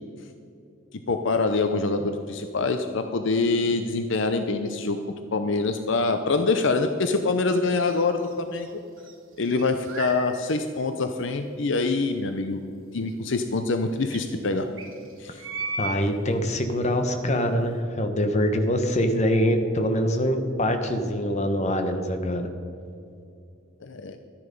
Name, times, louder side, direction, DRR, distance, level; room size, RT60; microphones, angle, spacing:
voice 1, 0.9-5.0 5.3-8.7 9.4-12.6 12.9-14.7 15.2-15.4 23.8-24.2, left 3 dB, 60° left, 7 dB, 0.6 m, -25 dB
sound 1, 7.7-8.7 9.0-10.3 10.8-10.9 13.1-13.2 13.4-13.5 14.1-14.2 14.8-16.0, right 3 dB, 70° right, 2.0 m, -35 dB
voice 2, 15.8-22.5, equal, 35° left, 6 dB, 1.0 m, -24 dB
13.0 x 9.9 x 5.3 m, 2.5 s
head